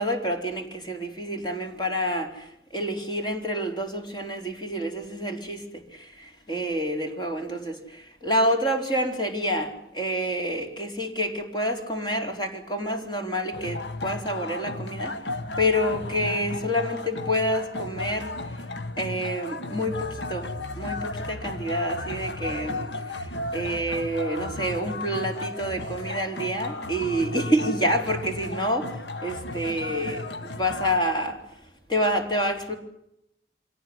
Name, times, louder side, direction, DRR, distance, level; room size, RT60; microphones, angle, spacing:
voice 1, 0.0-2.4 2.7-5.6 6.2-7.8 8.2-15.1 15.6-18.3 19.0-20.5 20.8-22.9 23.5-28.9 29.2-31.4 31.9-32.7, equal, 25° left, 3 dB, 4.0 m, -28 dB
sound 1, 13.5-31.0, left 2 dB, 90° left, 1.5 m, -34 dB
25.5 x 18.0 x 9.7 m, 0.79 s
head